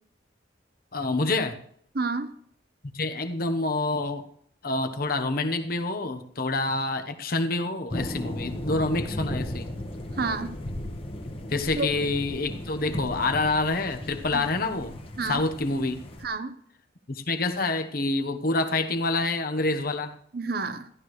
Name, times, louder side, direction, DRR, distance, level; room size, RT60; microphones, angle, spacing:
voice 1, 0.9-1.6 2.9-4.2 4.6-9.7 11.5-14.9 15.2-16.0 17.1-20.1, left 2 dB, 50° left, 1.0 m, -27 dB
voice 2, 1.9-2.4 10.2-10.5 11.8-11.9 14.3-14.5 15.2-15.4 16.2-16.6 20.3-20.9, right 3 dB, 55° right, 0.8 m, -30 dB
sound 1, 7.9-16.3, left 1 dB, 30° left, 1.2 m, -36 dB
14.0 x 11.5 x 3.2 m
head